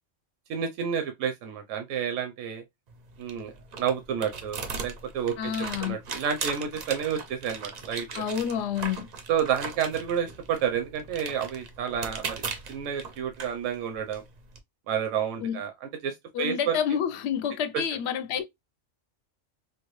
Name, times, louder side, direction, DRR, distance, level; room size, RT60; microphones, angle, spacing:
voice 1, 0.5-2.6 3.2-5.5 5.8-8.2 9.3-12.4 12.7-14.2 14.9-16.8, right 8 dB, 85° right, 1.0 m, -30 dB
sound 1, 2.9-14.6, right 5 dB, 50° right, 0.5 m, -39 dB
voice 2, 5.4-6.0 8.1-9.1 15.4-15.6 16.3-18.4, left 8 dB, 70° left, 0.8 m, -29 dB
3.2 x 2.3 x 3.0 m
omnidirectional pair, 1.3 m